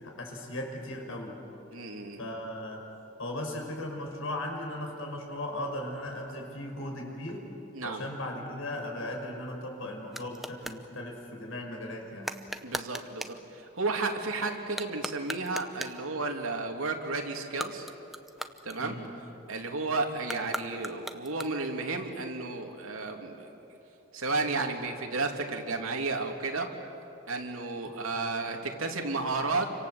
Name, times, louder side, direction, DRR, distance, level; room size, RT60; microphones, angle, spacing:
voice 1, 0.0-1.4 2.2-2.9 3.2-7.5 7.8-12.3 18.8-19.2 28.1-28.3, left 1 dB, 75° left, 2 dB, 5.5 m, -37 dB
voice 2, 1.7-2.2 7.7-8.0 12.6-17.9 18.6-18.9 19.5-23.5 24.1-26.7 27.3-29.7, right 3 dB, 90° right, 2 dB, 2.9 m, -32 dB
sound 1, 9.5-10.8 12.2-13.4 14.6-16.1 17.4-19.2 20.2-21.8, equal, ahead, 0.8 m, -40 dB
29.5 x 25.5 x 8.0 m, 3.0 s
head